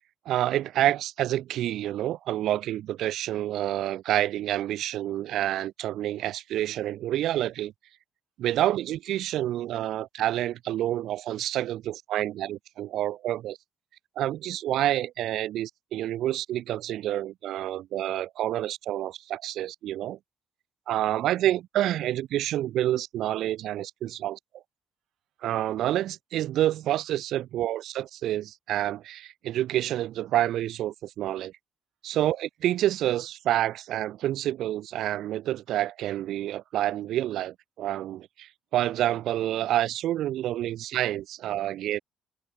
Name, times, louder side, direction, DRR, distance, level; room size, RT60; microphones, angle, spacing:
voice 1, 0.2-7.7 8.4-13.6 14.1-20.2 20.9-24.4 25.4-31.5 32.0-42.0, right 13 dB, 75° right, 1.7 m, -28 dB
supercardioid pair, 65°, 0 cm